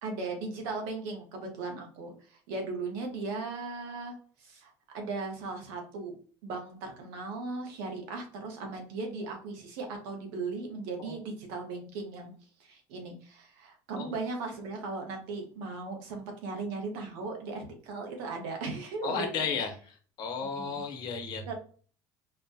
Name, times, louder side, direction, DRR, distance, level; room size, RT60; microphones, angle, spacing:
voice 1, 0.0-6.1 6.4-12.3 12.6-19.6 20.6-20.8 21.5-21.6, right 3 dB, 90° right, 3 dB, 1.0 m, -37 dB
voice 2, 19.0-21.5, left 5 dB, 55° left, 5 dB, 0.9 m, -34 dB
4.2 x 2.2 x 2.7 m, 0.43 s
cardioid pair, 125°, 9 cm